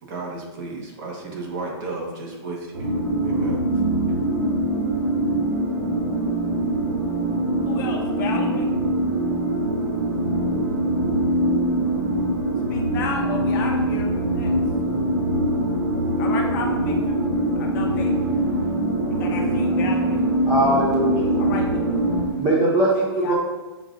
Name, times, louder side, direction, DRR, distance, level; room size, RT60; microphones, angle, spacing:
voice 1, 0.0-2.9 3.2-3.6, right 3 dB, 40° right, -2 dB, 1.1 m, -33 dB
sound 1, 2.7-22.3, right 1 dB, 80° right, 1.3 m, -23 dB
voice 2, 7.6-8.8 12.7-14.5 16.2-17.2 17.6-18.2 19.2-20.2 21.4-21.8 22.9-23.3, left 4 dB, 45° left, 1 dB, 0.7 m, -33 dB
voice 3, 20.4-21.3 22.4-23.3, right 1 dB, 15° right, -6 dB, 0.6 m, -20 dB
6.9 x 2.5 x 2.4 m, 1.2 s
hypercardioid pair, 155°, 14 cm